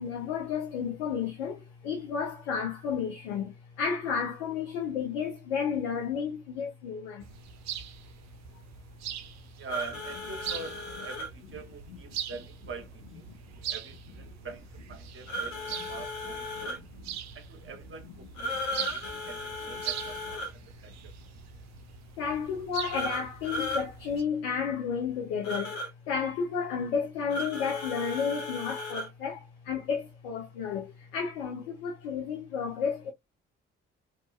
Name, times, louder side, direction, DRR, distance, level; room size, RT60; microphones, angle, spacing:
voice 1, 0.0-7.3 13.3-13.4 15.3-15.4 18.7-19.2 22.2-33.1, left 6 dB, 80° left, 0.7 m, -32 dB
sound 1, 7.2-24.2, right 10 dB, 60° right, 0.6 m, -42 dB
voice 2, 9.6-16.8 17.3-21.1, right 4 dB, 40° right, 1.0 m, -45 dB
sound 2, 9.7-11.3 15.3-16.8 18.3-20.5 22.9-23.8 25.4-25.9 27.3-29.1, left 1 dB, 65° left, 1.2 m, -36 dB
2.8 x 2.5 x 2.4 m
hypercardioid pair, 45°, 31 cm